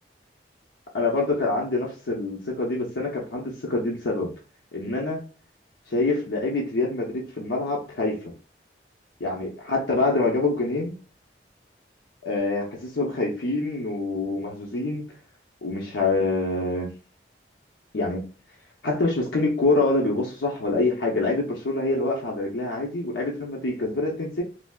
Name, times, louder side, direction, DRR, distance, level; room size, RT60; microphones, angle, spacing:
voice 1, 0.9-4.3 4.7-5.3 5.9-8.2 9.2-10.9 12.3-15.0 15.6-16.9 17.9-18.3 18.8-24.4, left 2 dB, 85° left, -2 dB, 0.6 m, -25 dB
3.2 x 2.5 x 2.3 m, 0.34 s
head